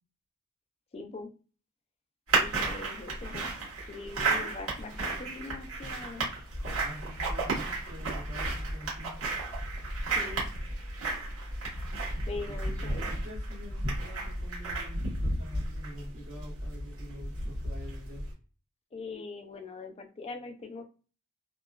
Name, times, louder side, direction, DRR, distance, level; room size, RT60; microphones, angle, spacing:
voice 1, 0.9-1.3 2.3-3.5 3.9-6.3 10.1-10.5 12.2-13.1 18.9-20.8, left 3 dB, 30° left, 5 dB, 0.4 m, -42 dB
sound 1, 2.3-18.3, right 2 dB, 80° right, 1.4 m, -33 dB
voice 2, 6.8-9.2 12.5-18.3, equal, 65° right, -3 dB, 1.1 m, -47 dB
2.8 x 2.3 x 2.3 m, 0.36 s
head